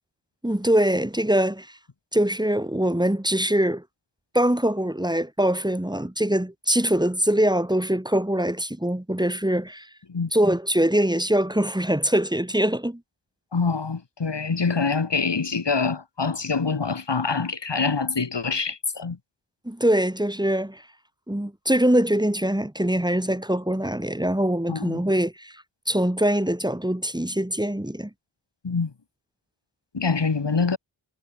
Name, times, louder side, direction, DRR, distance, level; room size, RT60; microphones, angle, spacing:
voice 1, 0.4-1.7 2.1-3.8 4.3-9.9 10.3-13.0 19.7-20.8 21.3-28.1, right 1 dB, 10° right, 5.8 m, -23 dB
voice 2, 13.5-19.2 24.7-25.0 28.6-28.9 29.9-30.8, left 4 dB, 60° left, 7.8 m, -25 dB
wide cardioid pair, 105°, 48 cm